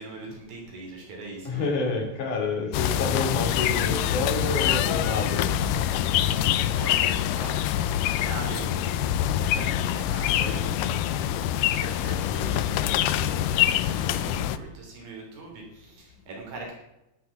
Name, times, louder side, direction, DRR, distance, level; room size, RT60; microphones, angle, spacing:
voice 1, 0.0-1.7 5.6-5.7 6.7-16.7, right 3 dB, 70° right, 0 dB, 5.0 m, -41 dB
voice 2, 1.5-5.5, left 3 dB, 60° left, 2 dB, 3.9 m, -28 dB
sound 1, 2.7-14.6, left 11 dB, 80° left, 2.0 m, -25 dB
12.0 x 11.5 x 5.9 m, 0.91 s
omnidirectional pair, 4.1 m